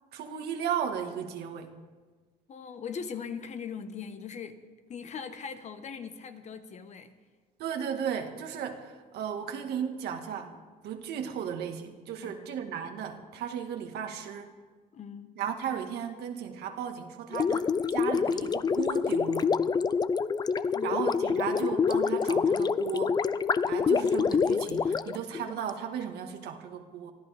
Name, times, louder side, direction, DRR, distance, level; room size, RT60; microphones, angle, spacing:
voice 1, 0.1-1.7 7.6-10.5 10.8-14.5 15.4-17.7 17.9-19.5 20.8-23.2 23.7-27.1, right 8 dB, 75° right, 4 dB, 1.8 m, -35 dB
voice 2, 2.5-4.6 4.9-7.1 12.2-12.5 14.9-15.3 20.7-21.0, left 6 dB, 45° left, 9 dB, 1.2 m, -40 dB
Gurgling, 17.3-25.7, left 5 dB, 25° left, 0.4 m, -27 dB
24.0 x 15.0 x 3.5 m, 1.4 s
cardioid pair, 110°, 17 cm